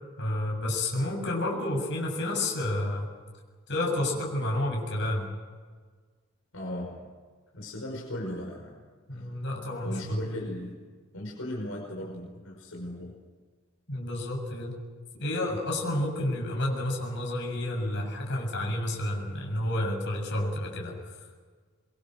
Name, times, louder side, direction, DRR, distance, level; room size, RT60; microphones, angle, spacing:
voice 1, 0.2-3.1 3.7-5.3 9.1-10.3 13.9-14.8 15.2-21.1, left 1 dB, 60° left, 0 dB, 7.1 m, -30 dB
voice 2, 6.5-7.1 7.5-8.8 9.8-10.8 11.1-13.2, left 1 dB, 80° left, -1 dB, 5.2 m, -37 dB
24.5 x 23.0 x 6.6 m, 1.5 s
head